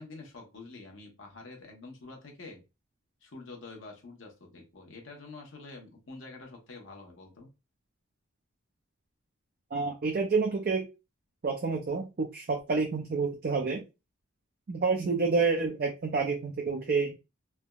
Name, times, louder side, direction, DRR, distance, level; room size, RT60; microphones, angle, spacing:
voice 1, 0.0-2.6 3.2-7.5, left 3 dB, 65° left, 2 dB, 0.9 m, -47 dB
voice 2, 9.7-10.9 11.4-13.8 14.7-17.2, right 4 dB, 45° right, 2 dB, 0.4 m, -28 dB
3.3 x 2.0 x 2.3 m, 0.27 s
head